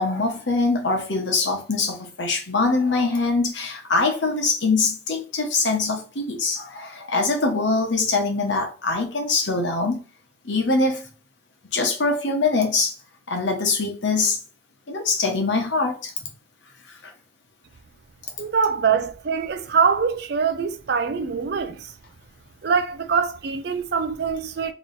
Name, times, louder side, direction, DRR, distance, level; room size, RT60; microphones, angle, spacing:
voice 1, 0.0-10.0 10.4-11.1 11.7-12.9 13.3-14.4 14.9-16.1 16.9-17.1, left 3 dB, 75° left, 1.1 m, -23 dB
voice 2, 18.4-21.9 22.6-24.7, right 6 dB, 60° right, 0.5 m, -23 dB
3.0 x 3.0 x 4.0 m
head